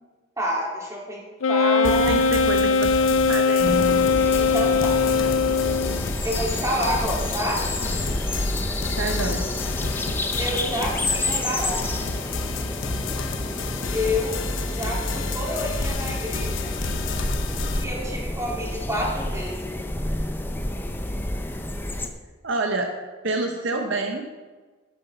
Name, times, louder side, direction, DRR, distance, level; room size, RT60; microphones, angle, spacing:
voice 1, 0.4-1.2 1.5-2.1 4.4-5.0 6.2-7.6 10.4-12.0 13.9-14.4 14.6-16.7 17.7-19.6, equal, 15° right, -4 dB, 3.2 m, -28 dB
Wind instrument woodwind instrument, 1.4-6.1, left 5 dB, 90° left, 0.6 m, -20 dB
sound 1, 1.8-17.8, left 3 dB, 70° left, 0.9 m, -30 dB
voice 2, 1.8-4.1 9.0-9.5 22.4-22.9 23.2-24.4, right 2 dB, 65° right, 3 dB, 1.1 m, -28 dB
sound 2, 3.6-22.1, left 1 dB, 10° left, 0.7 m, -30 dB
12.0 x 8.1 x 5.8 m, 1.3 s
head